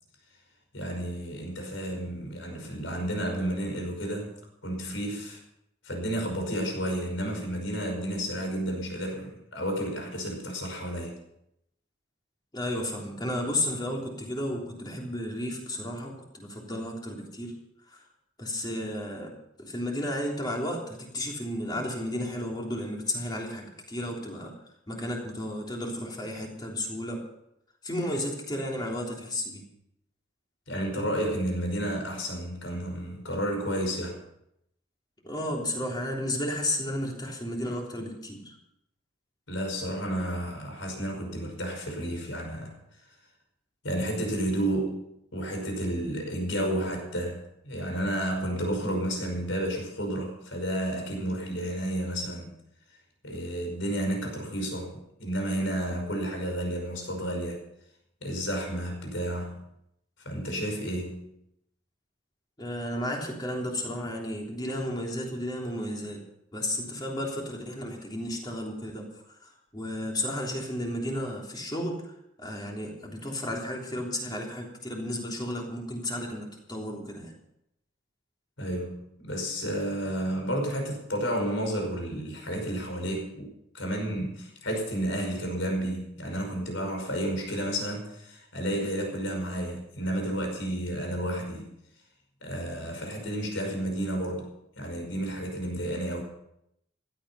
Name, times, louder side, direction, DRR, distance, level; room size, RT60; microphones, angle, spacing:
voice 1, 0.7-4.3 4.6-5.4 5.8-11.2 30.7-34.2 39.5-42.7 43.8-45.0 45.3-52.6 53.2-57.6 58.2-59.7 60.2-61.3 78.6-83.5 83.7-91.7 92.4-94.5 94.8-96.2, right 1 dB, 70° left, 2 dB, 5.4 m, -31 dB
voice 2, 12.5-17.5 17.9-18.0 18.4-19.3 19.6-24.5 24.9-27.2 27.8-29.6 35.2-38.6 62.6-66.2 66.5-77.3, left 1 dB, 20° left, -1 dB, 3.4 m, -33 dB
16.0 x 12.5 x 5.7 m, 0.79 s
head